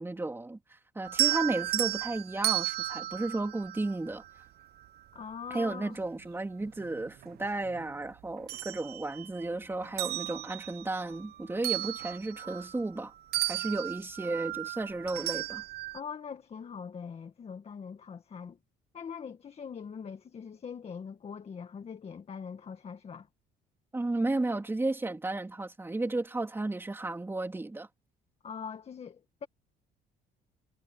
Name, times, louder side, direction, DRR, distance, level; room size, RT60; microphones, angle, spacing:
voice 1, 0.0-4.4 5.5-13.1 13.4-15.6 23.9-27.9, right 2 dB, 15° right, 3.5 m, -33 dB
sound 1, 1.0-4.4 6.0-6.1 6.7-7.9 8.2-9.5 9.8-13.0 13.3-16.0, right 17 dB, 70° right, 1.0 m, -34 dB
voice 2, 5.1-6.0 15.9-18.6 18.9-23.3 28.4-29.5, left 6 dB, 35° left, 1.8 m, -42 dB
cardioid pair, 110°, 17 cm